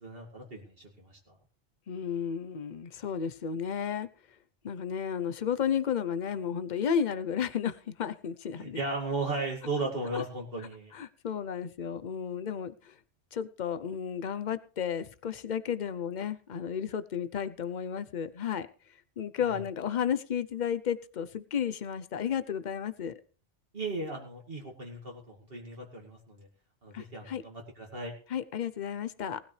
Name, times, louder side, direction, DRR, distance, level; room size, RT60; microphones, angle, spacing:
voice 1, 0.0-1.3 8.6-10.9 19.4-19.6 23.7-26.5 26.8-28.1, right 2 dB, 60° right, 2.5 m, -36 dB
voice 2, 1.9-4.1 4.6-8.8 10.1-10.2 10.9-12.9 13.3-18.7 19.2-23.2 26.9-27.4 28.3-29.4, left 8 dB, 50° left, 0.8 m, -33 dB
19.0 x 12.5 x 3.3 m
omnidirectional pair, 1.1 m